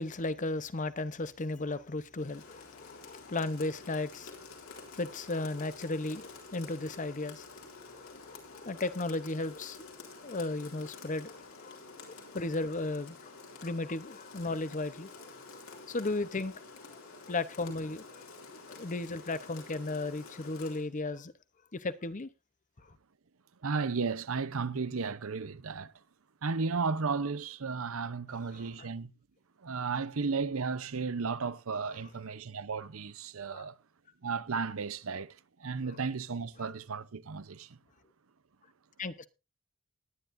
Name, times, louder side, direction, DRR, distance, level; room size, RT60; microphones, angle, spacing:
voice 1, 0.0-4.3 4.7-7.6 7.9-9.9 10.2-13.3 13.6-16.5 16.8-17.0 17.3-18.2 18.7-21.3 21.7-22.3 28.5-28.9 33.5-33.7 39.0-39.3, left 2 dB, 35° left, 0.8 m, -35 dB
Rain, 2.2-20.9, left 4 dB, 80° left, 3.7 m, -50 dB
voice 2, 23.6-25.9 26.4-29.1 29.6-33.7 34.2-37.8, right 4 dB, 75° right, 0.7 m, -34 dB
19.5 x 10.0 x 2.6 m
head